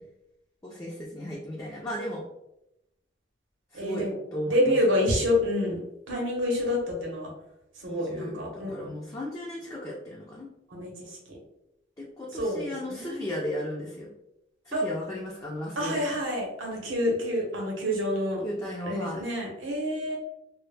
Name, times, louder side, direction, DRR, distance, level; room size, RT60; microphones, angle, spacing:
voice 1, 0.6-2.2 3.7-4.7 7.8-10.5 12.0-14.1 14.7-16.0 18.4-19.2, left 1 dB, 15° left, -4 dB, 0.3 m, -35 dB
voice 2, 3.7-4.1 4.5-5.8 6.1-7.3 7.7-9.0 10.7-11.4 12.3-13.3 14.7-14.9 15.8-18.4 18.9-20.2, left 1 dB, 80° right, -1 dB, 0.7 m, -28 dB
2.0 x 2.0 x 3.2 m, 0.85 s
head